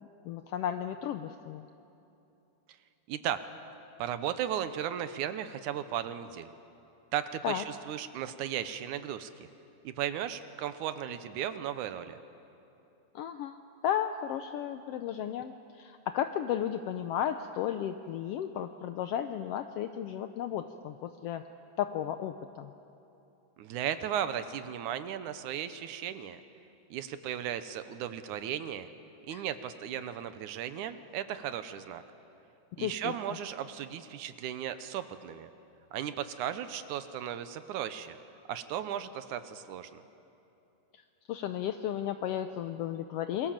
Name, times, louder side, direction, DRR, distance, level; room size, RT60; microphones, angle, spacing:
voice 1, 0.2-1.7 7.4-7.6 13.1-21.4 21.8-22.7 29.3-29.4 32.8-33.4 41.3-43.5, left 10 dB, 80° left, 8 dB, 1.4 m, -34 dB
voice 2, 3.1-3.4 4.0-6.5 7.1-9.5 9.8-12.2 23.6-26.4 26.9-28.9 29.3-32.0 32.8-35.5 35.9-38.2 38.5-40.0, right 10 dB, 80° right, 11 dB, 2.4 m, -36 dB
27.5 x 22.0 x 7.3 m, 2.9 s
omnidirectional pair, 3.5 m